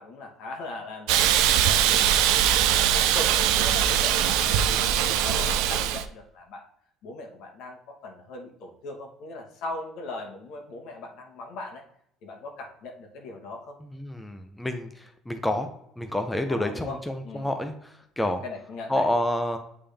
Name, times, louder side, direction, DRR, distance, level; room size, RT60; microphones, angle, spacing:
voice 1, 0.0-2.3 2.6-6.6 7.0-11.8 12.2-13.7 16.5-17.0 17.2-17.5 18.2-19.0, left 2 dB, 65° left, 3 dB, 1.2 m, -39 dB
Hiss, 1.1-6.0, right 10 dB, 90° right, 0.4 m, -22 dB
voice 2, 13.8-15.7 16.0-18.4 18.9-19.6, left 1 dB, 5° left, 6 dB, 0.5 m, -29 dB
8.6 x 3.5 x 3.4 m, 0.74 s
cardioid pair, 150°, 0 cm